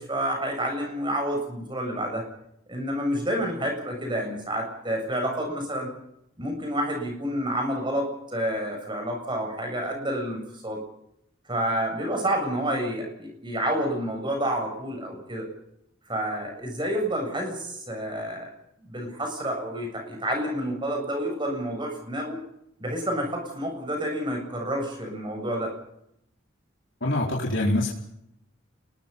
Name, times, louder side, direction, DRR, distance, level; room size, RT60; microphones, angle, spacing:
voice 1, 0.0-2.3 2.7-5.9 6.4-10.8 11.5-15.5 16.1-18.5 18.9-22.4 22.8-25.7, right 1 dB, 25° right, 3 dB, 7.9 m, -29 dB
voice 2, 27.0-27.9, left 1 dB, 65° left, -3 dB, 4.7 m, -24 dB
28.5 x 21.5 x 5.6 m, 0.78 s
head